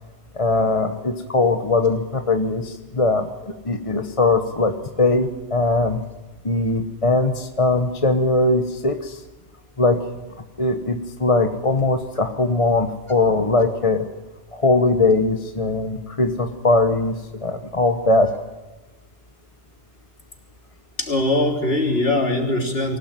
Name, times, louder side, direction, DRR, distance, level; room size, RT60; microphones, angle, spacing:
voice 1, 0.4-3.2 3.7-4.7 5.0-6.0 6.4-9.1 9.8-10.0 10.6-14.0 14.5-17.1 17.4-18.3, left 2 dB, 30° left, 6 dB, 1.1 m, -20 dB
voice 2, 21.0-23.0, left 2 dB, 55° left, 2 dB, 3.8 m, -21 dB
24.5 x 17.0 x 9.1 m, 1.2 s
omnidirectional pair, 1.2 m